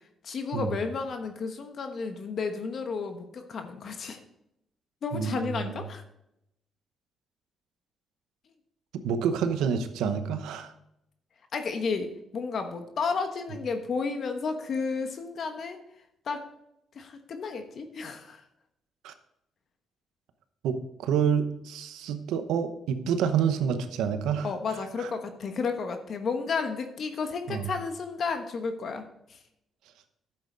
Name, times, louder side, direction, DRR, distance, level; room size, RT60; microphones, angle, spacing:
voice 1, 0.2-4.2 5.0-6.0 11.5-15.8 16.3-16.5 16.9-18.4 24.4-29.0 29.3-29.4, left 4 dB, 55° left, 6 dB, 1.1 m, -32 dB
voice 2, 5.1-5.8 9.0-10.7 19.0-19.1 20.6-24.5 25.0-25.1 27.5-27.7, right 7 dB, 90° right, 9 dB, 0.9 m, -28 dB
10.5 x 7.8 x 3.9 m, 0.81 s
cardioid pair, 90°, 0 cm